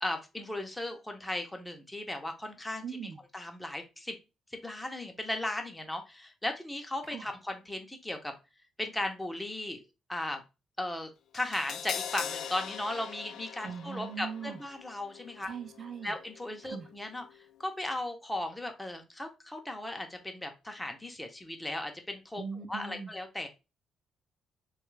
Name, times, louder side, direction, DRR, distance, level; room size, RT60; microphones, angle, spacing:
voice 1, 0.0-2.8 3.3-4.2 4.5-8.3 8.8-9.8 10.1-10.4 10.8-15.5 16.0-17.2 17.6-22.4 22.7-23.5, left 1 dB, 10° left, 4 dB, 0.7 m, -36 dB
voice 2, 2.8-3.2 7.1-7.2 13.6-14.6 15.4-16.1 16.7-16.9 22.4-23.1, right 6 dB, 50° right, 8 dB, 0.5 m, -40 dB
Crash cymbal, 11.3-17.5 17.8-17.9, left 8 dB, 75° left, 0.3 m, -43 dB
3.1 x 2.3 x 3.1 m, 0.27 s
cardioid pair, 90°, 0 cm